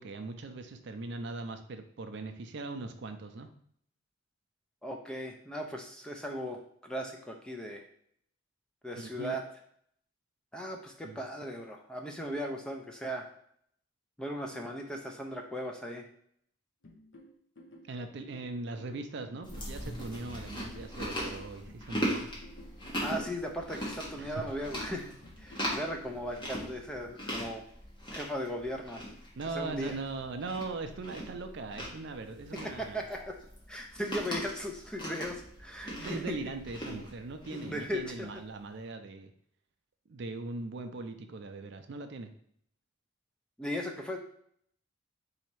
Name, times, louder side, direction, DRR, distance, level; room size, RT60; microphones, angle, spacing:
voice 1, 0.0-3.5 9.0-9.4 11.0-11.2 17.9-22.4 24.2-24.4 29.4-33.0 35.9-39.3 40.1-42.3, right 3 dB, 55° right, 7 dB, 0.4 m, -40 dB
voice 2, 4.8-7.8 8.8-9.4 10.5-13.3 14.2-16.1 23.0-27.6 28.1-29.0 29.6-30.0 32.5-33.4 33.7-36.4 37.5-38.4 43.6-44.2, equal, 5° left, 2 dB, 0.4 m, -37 dB
sound 1, 16.8-26.8, left 1 dB, 60° left, 0.8 m, -54 dB
Chewing mastication, 19.4-38.4, equal, 20° left, 1.1 m, -40 dB
4.2 x 2.8 x 4.5 m, 0.67 s
head